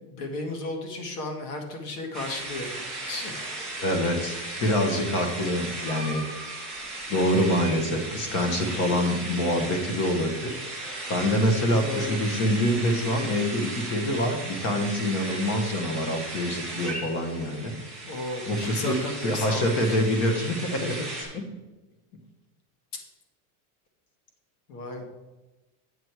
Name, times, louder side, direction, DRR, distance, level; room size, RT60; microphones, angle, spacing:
voice 1, 0.0-2.7 3.1-3.3 6.3-6.4 8.7-8.9 11.7-12.2 18.0-20.0 24.7-25.0, left 2 dB, 85° left, 4 dB, 2.0 m, -34 dB
sound 1, 2.1-21.2, right 2 dB, ahead, 2.3 m, -36 dB
voice 2, 3.8-6.2 7.1-17.8 18.5-18.9 19.2-21.4, left 1 dB, 30° left, 5 dB, 1.3 m, -26 dB
8.1 x 7.3 x 4.7 m, 1.1 s
supercardioid pair, 175°, 46 cm